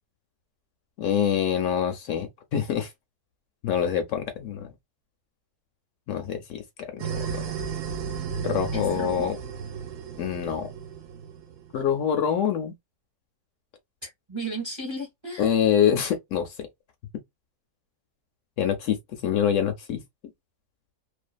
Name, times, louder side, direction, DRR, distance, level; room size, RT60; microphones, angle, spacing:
voice 1, 1.0-2.9 3.6-4.7 6.1-6.6 6.9-7.5 8.4-9.3 10.2-10.7 11.7-12.7 15.4-16.7 18.6-19.0 19.2-20.0, left 8 dB, 70° left, 0.9 m, -25 dB
sound 1, 7.0-11.9, right 7 dB, 70° right, 0.9 m, -34 dB
voice 2, 8.7-9.3 14.0-15.5, right 2 dB, 25° right, 0.7 m, -34 dB
2.5 x 2.4 x 2.2 m
omnidirectional pair, 1.5 m